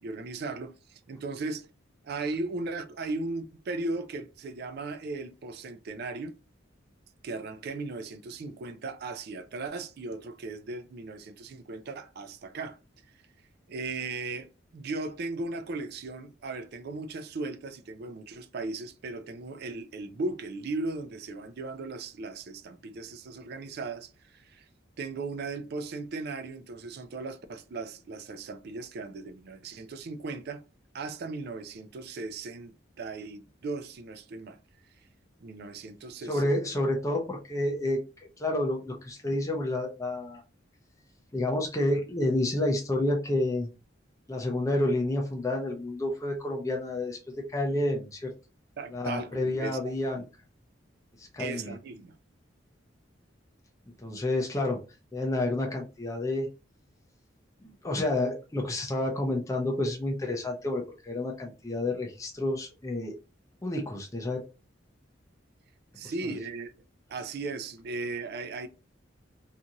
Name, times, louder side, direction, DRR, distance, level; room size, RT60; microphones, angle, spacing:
voice 1, 0.0-1.7 2.0-6.3 7.2-12.8 13.7-24.6 25.0-30.6 30.9-34.6 35.4-36.6 48.8-49.8 50.2-50.3 51.4-52.2 66.0-66.7 67.1-68.7, right 3 dB, 55° right, 0.4 m, -37 dB
voice 2, 36.3-38.0 38.4-40.4 41.3-43.7 44.3-47.2 47.5-48.3 48.9-50.2 51.2-51.7 54.0-54.8 55.1-56.5 57.6-63.1 63.6-64.4 66.0-66.3, left 1 dB, 15° left, 0.5 m, -29 dB
2.6 x 2.4 x 2.8 m
head